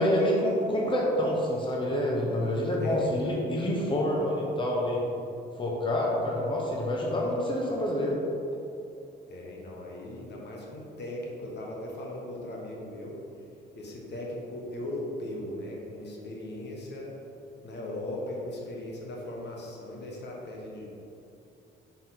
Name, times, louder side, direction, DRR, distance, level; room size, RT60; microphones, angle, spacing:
voice 1, 0.0-5.0 5.6-8.2, left 1 dB, 25° left, -3 dB, 1.1 m, -27 dB
voice 2, 2.8-3.1 9.3-13.2 13.7-17.1 17.6-20.9, left 1 dB, 60° left, -2 dB, 1.3 m, -38 dB
6.1 x 4.1 x 4.2 m, 2.7 s
cardioid pair, 90°, 20 cm